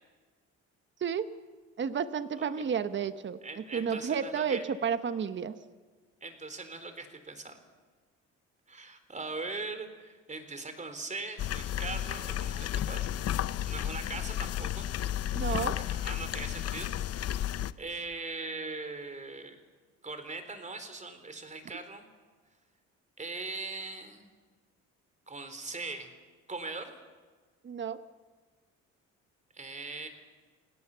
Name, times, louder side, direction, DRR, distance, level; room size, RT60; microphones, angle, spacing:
voice 1, 1.8-3.4 3.7-5.5 15.3-15.8 27.6-28.0, right 7 dB, 40° right, 11 dB, 1.2 m, -31 dB
voice 2, 3.4-4.6 6.2-7.6 8.7-13.2 13.7-14.9 15.5-19.6 20.0-22.1 23.2-24.3 25.3-26.1 26.5-26.9 29.5-30.1, right 3 dB, 25° right, 8 dB, 3.8 m, -40 dB
sound 1, 11.4-17.7, left 11 dB, 55° left, 0.8 m, -33 dB
29.0 x 17.5 x 7.0 m, 1.4 s
cardioid pair, 95°, 30 cm